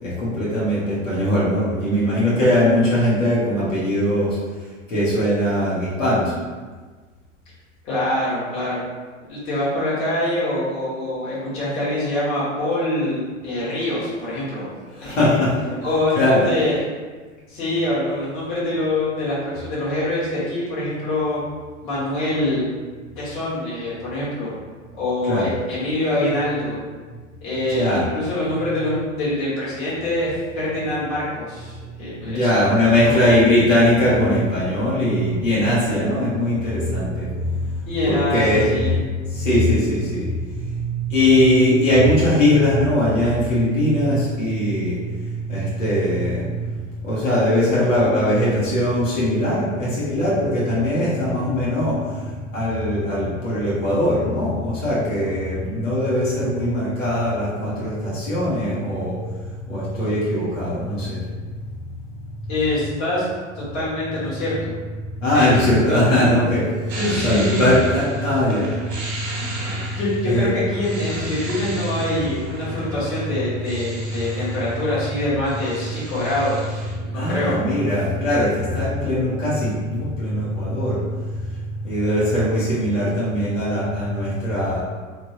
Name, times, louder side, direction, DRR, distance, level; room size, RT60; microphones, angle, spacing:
voice 1, 0.0-4.4 4.9-6.3 14.9-15.5 16.1-16.5 25.3-25.5 27.7-28.0 32.2-59.2 59.7-61.2 65.2-67.0 67.2-69.8 70.2-70.5 77.1-84.8, left 1 dB, 75° left, -9 dB, 1.4 m, -20 dB
voice 2, 7.8-8.8 9.3-14.7 15.0-15.3 15.8-16.8 17.5-21.4 21.8-22.7 23.2-24.5 25.0-26.8 27.4-32.5 33.0-33.2 37.9-38.9 62.5-63.2 63.5-64.7 65.3-66.2 66.9-67.7 70.0-77.5, left 1 dB, 35° left, -9 dB, 1.5 m, -24 dB
sound 1, 66.9-74.9 75.2-76.9, right 2 dB, 50° right, 1.1 m, -35 dB
3.2 x 2.9 x 2.8 m, 1.4 s
figure-of-eight pair, 90°, 39 cm